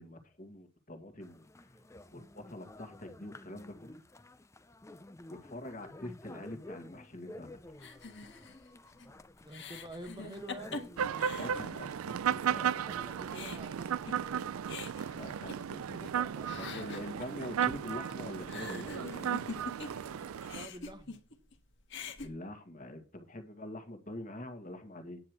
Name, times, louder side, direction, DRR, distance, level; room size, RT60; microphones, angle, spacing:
voice 1, 0.0-1.5 2.1-4.0 5.3-7.6 11.3-12.9 15.1-16.1 16.6-19.4 22.2-25.2, left 1 dB, 40° left, 1.9 m, -45 dB
sound 1, 1.2-20.4, left 1 dB, 15° left, 0.5 m, -53 dB
sound 2, 7.8-12.2 12.5-12.6 13.0-16.1 16.4-20.1 20.4-21.5 21.8-22.3, left 4 dB, 55° left, 1.7 m, -45 dB
voice 2, 9.4-10.9 12.6-14.6 20.5-21.2, right 1 dB, 20° right, 1.0 m, -48 dB
sound 3, 11.0-20.7, right 8 dB, 85° right, 0.4 m, -35 dB
10.0 x 8.5 x 4.6 m
head